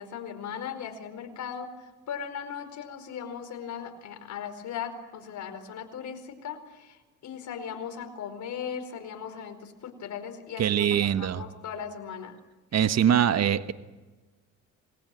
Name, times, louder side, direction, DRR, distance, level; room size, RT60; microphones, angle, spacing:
voice 1, 0.0-12.4, left 7 dB, 70° left, 6 dB, 4.7 m, -38 dB
voice 2, 10.6-11.4 12.7-13.7, right 9 dB, 60° right, 11 dB, 1.4 m, -23 dB
27.0 x 21.0 x 9.1 m, 1.2 s
cardioid pair, 90°, 30 cm